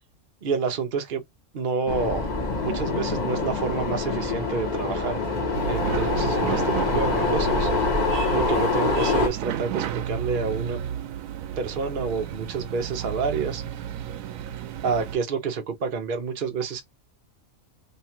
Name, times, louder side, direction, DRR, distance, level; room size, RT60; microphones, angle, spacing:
voice 1, 0.4-1.2 1.5-2.2 2.6-5.2 5.6-8.0 8.3-10.8 11.6-13.6 14.8-16.8, right 5 dB, 50° right, 0.8 m, -28 dB
sound 1, 1.9-9.3, left 3 dB, 35° left, 1.0 m, -25 dB
sound 2, 5.5-15.1, right 10 dB, 85° right, 1.0 m, -32 dB
3.1 x 2.3 x 4.2 m
omnidirectional pair, 1.3 m